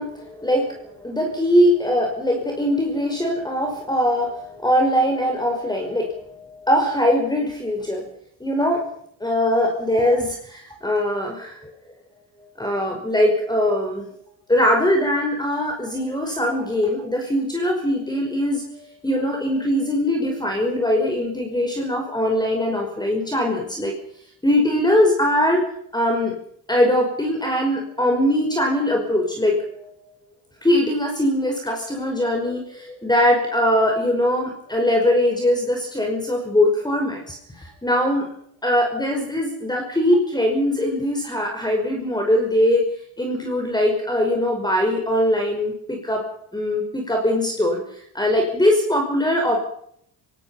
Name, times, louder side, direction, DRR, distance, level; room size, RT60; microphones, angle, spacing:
voice 1, 0.0-8.0 8.4-8.8 9.2-11.7 12.4-14.1 14.5-23.9 24.4-25.6 25.9-26.3 26.7-29.9 30.6-38.3 38.6-42.8 43.2-46.2 46.5-47.8 48.1-49.6, left 1 dB, 10° left, 2 dB, 5.5 m, -21 dB
25.0 x 19.0 x 5.8 m, 0.68 s
supercardioid pair, 85°, 41 cm